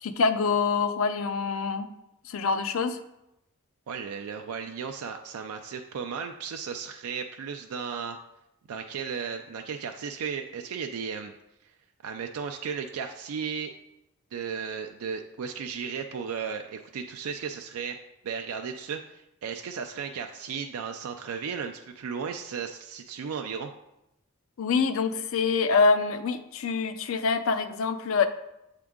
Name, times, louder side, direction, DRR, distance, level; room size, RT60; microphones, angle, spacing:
voice 1, 0.0-1.9 2.3-3.0 24.6-28.3, left 4 dB, 65° left, 10 dB, 0.4 m, -25 dB
voice 2, 3.9-8.2 8.7-11.3 11.6-11.7 12.0-13.7 14.3-18.0 18.2-23.7, right 6 dB, 80° right, 5 dB, 0.4 m, -35 dB
7.7 x 3.6 x 3.6 m, 0.88 s
head